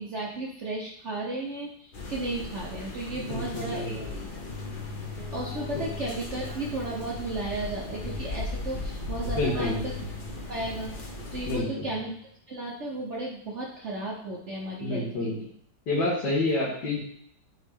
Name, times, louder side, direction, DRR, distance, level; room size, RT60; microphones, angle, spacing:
voice 1, 0.0-4.2 5.3-9.9 10.5-10.9 11.3-12.1 12.5-15.5, right 2 dB, 50° right, -3 dB, 0.9 m, -34 dB
sound 1, 1.9-11.6, left 2 dB, 45° left, 0.7 m, -38 dB
voice 2, 3.3-4.1 5.8-5.9 9.4-9.8 11.5-11.7 14.8-15.3 15.9-17.0, left 2 dB, 70° left, -9 dB, 2.1 m, -28 dB
Keyboard (musical), 4.5-12.3, left 3 dB, 30° right, 2.3 m, -42 dB
8.9 x 3.1 x 3.5 m, 0.66 s
omnidirectional pair, 1.9 m